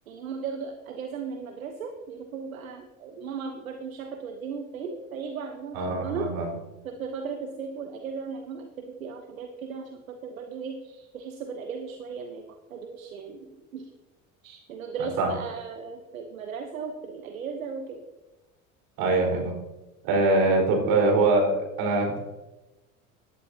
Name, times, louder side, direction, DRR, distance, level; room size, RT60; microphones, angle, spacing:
voice 1, 0.1-6.3 6.8-13.9 14.4-18.0, right 5 dB, 85° right, 5 dB, 1.1 m, -36 dB
voice 2, 5.7-6.5 15.2-15.3 19.0-19.5 20.0-22.2, right 2 dB, 60° right, 1 dB, 4.6 m, -23 dB
17.5 x 11.5 x 2.8 m, 1.1 s
hypercardioid pair, 70°, 40 cm